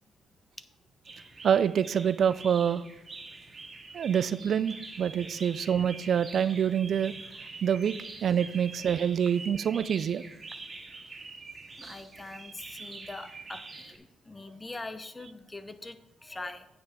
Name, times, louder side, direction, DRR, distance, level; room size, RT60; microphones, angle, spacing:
sound 1, 1.0-14.0, right 3 dB, 40° right, 1.8 m, -45 dB
voice 1, 1.4-2.8 3.9-7.1 7.6-7.9 8.2-10.2, right 8 dB, 60° right, 15 dB, 0.3 m, -26 dB
voice 2, 11.8-16.7, left 2 dB, 25° left, 10 dB, 0.8 m, -43 dB
8.9 x 7.6 x 3.6 m, 0.86 s
supercardioid pair, 55°, 0 cm